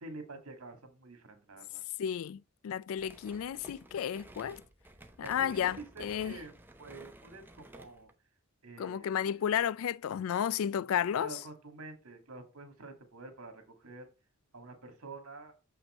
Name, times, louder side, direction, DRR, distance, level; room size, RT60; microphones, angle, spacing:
voice 1, 0.0-1.8 5.2-6.5 6.8-8.1 8.6-9.5 11.2-14.1 14.5-15.5, right 3 dB, 70° right, 2.1 m, -48 dB
voice 2, 2.0-4.6 5.2-6.4 8.8-11.4, left 9 dB, 65° left, 0.3 m, -32 dB
sound 1, 2.9-8.1, right 1 dB, 10° right, 0.8 m, -54 dB
7.0 x 5.9 x 4.3 m
head